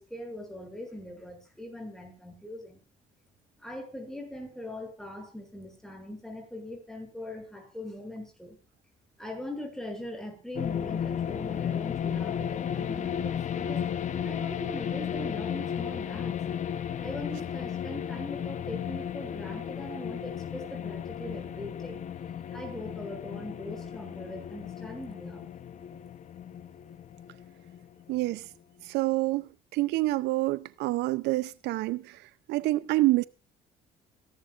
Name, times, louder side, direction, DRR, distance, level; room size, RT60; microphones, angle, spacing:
voice 1, 0.0-2.8 3.6-8.6 9.2-13.8 14.2-22.0 22.5-25.4, left 1 dB, 5° left, 6.6 m, -41 dB
sound 1, 10.6-28.3, left 8 dB, 45° left, 0.9 m, -34 dB
voice 2, 28.1-28.5 28.8-32.2 32.5-33.2, right 18 dB, 85° right, 0.6 m, -27 dB
27.5 x 11.5 x 2.5 m
cardioid pair, 110°, 17 cm